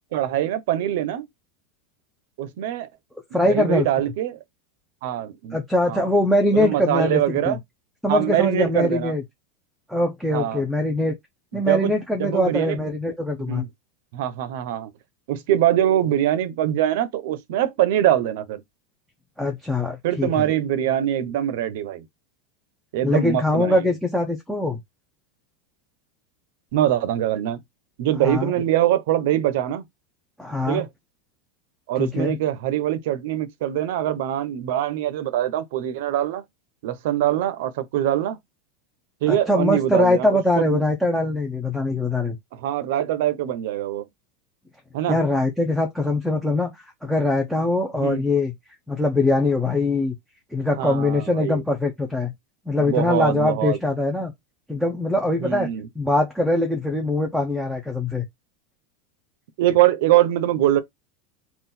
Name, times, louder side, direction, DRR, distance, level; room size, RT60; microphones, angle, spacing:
voice 1, 0.1-1.3 2.4-2.9 3.3-4.4 5.0-5.6 5.9-6.1 6.5-7.6 8.1-9.1 10.3-10.6 11.5-11.9 12.2-12.8 13.4-13.7 14.1-14.9 15.3-18.6 20.0-22.0 22.9-23.9 26.7-27.6 28.0-29.8 30.7-30.9 31.9-36.4 36.8-38.4 39.2-40.3 40.6-40.8 42.5-44.1 44.9-45.2 48.0-48.2 50.8-51.6 52.8-53.8 55.4-55.9 59.6-60.8, right 12 dB, 60° right, 0.6 m, -23 dB
voice 2, 3.3-3.9 5.5-7.6 8.0-9.2 9.9-11.2 11.5-13.6 19.4-20.5 23.0-24.8 28.2-28.5 30.4-30.8 32.0-32.4 39.3-42.4 45.1-46.7 47.0-48.5 48.9-50.1 50.5-52.3 52.7-54.3 54.7-55.7 56.0-58.2, left 2 dB, ahead, 0.5 m, -22 dB
3.8 x 2.3 x 4.2 m
supercardioid pair, 175°, 0 cm